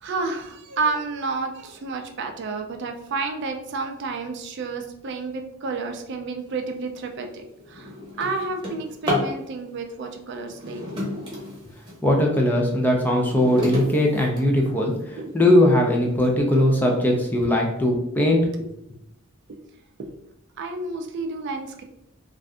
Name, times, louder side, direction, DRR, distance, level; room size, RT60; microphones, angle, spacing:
voice 1, 0.0-11.0 15.2-15.3 20.0-20.1 20.6-21.8, right 3 dB, 55° right, 4 dB, 0.4 m, -30 dB
Drawer open or close, 6.7-6.9 7.4-9.4 10.4-12.0 12.6-15.0 15.7-15.8 16.2-16.3 16.7-17.1, left 1 dB, 20° right, 0.9 m, -31 dB
voice 2, 12.0-18.7, left 1 dB, 10° left, 0 dB, 0.4 m, -20 dB
2.6 x 2.4 x 3.4 m, 0.81 s
head